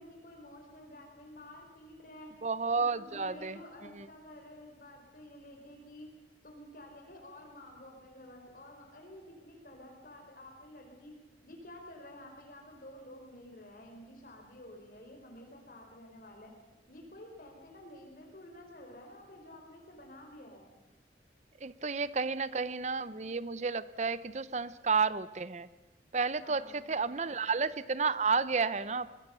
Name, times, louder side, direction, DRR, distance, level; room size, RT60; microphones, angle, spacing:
voice 1, 0.0-2.3 2.7-6.1 6.4-11.1 11.4-16.5 16.9-20.7 26.4-27.5, left 1 dB, 50° left, 2 dB, 4.3 m, -51 dB
voice 2, 2.4-3.6 4.0-4.1 21.6-25.7 26.1-29.1, right 4 dB, 40° right, 17 dB, 0.6 m, -31 dB
22.5 x 21.0 x 6.9 m, 1.1 s
head